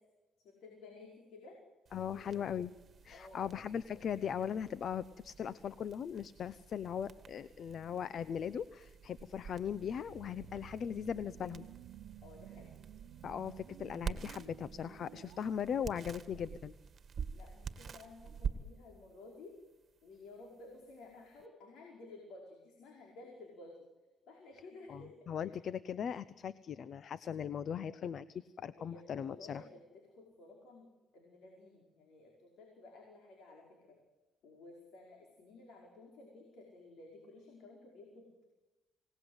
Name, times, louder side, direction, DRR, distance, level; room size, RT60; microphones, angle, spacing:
voice 1, 0.4-1.6 1.9-2.3 3.1-3.6 12.2-12.9 17.3-19.6 20.0-23.9 24.3-25.6 27.9-28.1 28.7-29.8 30.1-34.0 34.4-38.3, left 2 dB, 80° left, 0 dB, 5.0 m, -54 dB
voice 2, 1.9-2.7 3.0-11.6 13.2-16.7 24.9-29.6, left 8 dB, 60° left, 16 dB, 0.8 m, -39 dB
sound 1, 1.9-21.5, right 6 dB, 45° right, 1.9 m, -48 dB
sound 2, 10.1-15.6, right 13 dB, 90° right, 0.7 m, -54 dB
27.0 x 18.5 x 8.1 m, 1.1 s
cardioid pair, 90°, 0 cm